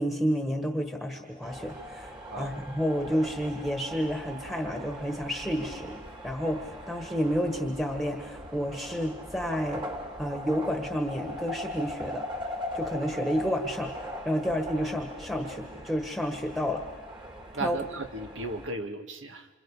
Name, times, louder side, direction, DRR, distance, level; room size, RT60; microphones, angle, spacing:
voice 1, 0.0-9.8 10.2-12.2 12.7-16.8 17.6-17.7, equal, ahead, 2 dB, 1.6 m, -30 dB
sound 1, 1.4-18.7, equal, 25° right, 2.5 m, -40 dB
voice 2, 17.5-19.5, right 2 dB, 75° right, 5 dB, 2.0 m, -35 dB
27.5 x 27.5 x 5.0 m, 1.3 s
head